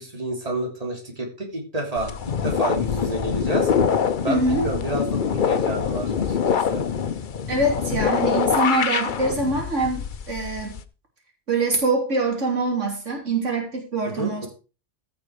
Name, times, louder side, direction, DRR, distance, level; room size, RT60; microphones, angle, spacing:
voice 1, 0.0-2.2 2.4-3.7 4.2-6.8 14.0-14.5, right 1 dB, 30° right, -1 dB, 3.4 m, -29 dB
sound 1, 2.0-10.8, left 7 dB, 45° left, 0.8 m, -24 dB
voice 2, 4.3-4.6 7.5-10.8 11.5-14.5, right 2 dB, 80° right, 1 dB, 3.3 m, -24 dB
15.0 x 6.0 x 4.9 m, 0.34 s
omnidirectional pair, 1.3 m